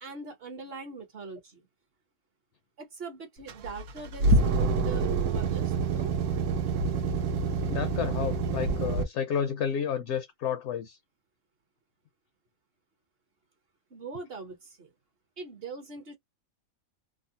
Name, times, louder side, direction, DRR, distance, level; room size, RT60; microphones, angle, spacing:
voice 1, 0.0-1.6 2.8-6.1 13.9-14.9 15.4-16.2, right 4 dB, 50° right, 0.9 m, -42 dB
sound 1, 3.5-9.0, right 3 dB, 90° right, 1.2 m, -27 dB
voice 2, 7.7-11.0, left 8 dB, 65° left, 0.8 m, -31 dB
3.6 x 2.0 x 2.5 m
omnidirectional pair, 1.5 m